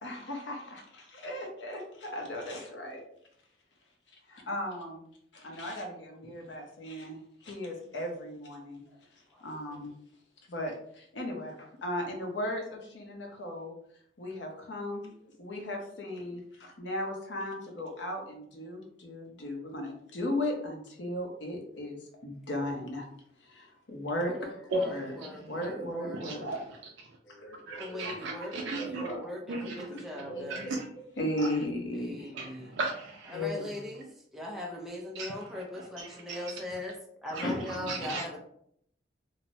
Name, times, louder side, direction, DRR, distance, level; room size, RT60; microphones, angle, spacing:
voice 1, 0.0-3.0 4.3-5.1 5.3-8.8 9.4-9.9 10.5-13.7 14.2-23.1 23.4-26.5 27.3-28.1 28.5-29.2 29.9-30.0 30.3-30.5 31.0-32.6 33.3-33.8 37.4-38.1, left 1 dB, 75° left, 1 dB, 0.7 m, -37 dB
voice 2, 24.2-26.2 27.8-30.7 31.9-32.7 33.3-37.0 37.2-38.4, left 1 dB, ahead, -2 dB, 0.4 m, -40 dB
voice 3, 26.2-26.6 27.7-29.0 29.5-29.7 30.3-30.8 32.4-32.5 32.7-33.4 35.2-35.3 36.3-36.4 37.9-38.4, right 3 dB, 75° right, 0 dB, 0.4 m, -35 dB
3.0 x 2.0 x 2.6 m, 0.69 s
head